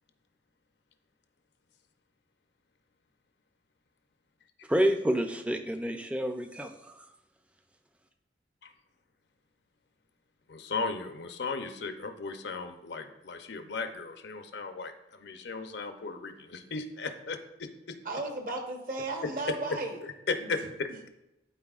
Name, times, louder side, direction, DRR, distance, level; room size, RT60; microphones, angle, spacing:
voice 1, 4.7-7.1, equal, 5° right, 6 dB, 0.4 m, -29 dB
voice 2, 10.5-18.0 19.2-21.1, left 4 dB, 75° left, 7 dB, 0.6 m, -36 dB
voice 3, 18.0-20.0 20.4-20.5, right 2 dB, 50° right, 3 dB, 1.0 m, -34 dB
12.5 x 4.2 x 2.4 m, 0.92 s
head